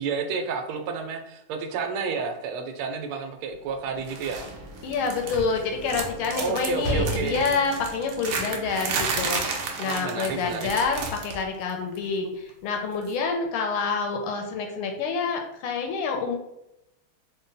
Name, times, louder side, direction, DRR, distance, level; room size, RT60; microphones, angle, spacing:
voice 1, 0.0-4.4 6.4-7.5 9.8-10.7, right 5 dB, 90° right, 5 dB, 1.5 m, -31 dB
Sliding door / Slam, 3.4-10.4, right 1 dB, 15° right, 0.5 m, -37 dB
sound 1, 4.1-4.5 4.8-5.6 5.9-11.4 11.7-12.0 13.0-13.1, right 4 dB, 70° right, 1.1 m, -32 dB
voice 2, 4.8-16.4, left 5 dB, 85° left, 3 dB, 1.5 m, -27 dB
4.0 x 2.2 x 3.9 m, 0.84 s
omnidirectional pair, 2.3 m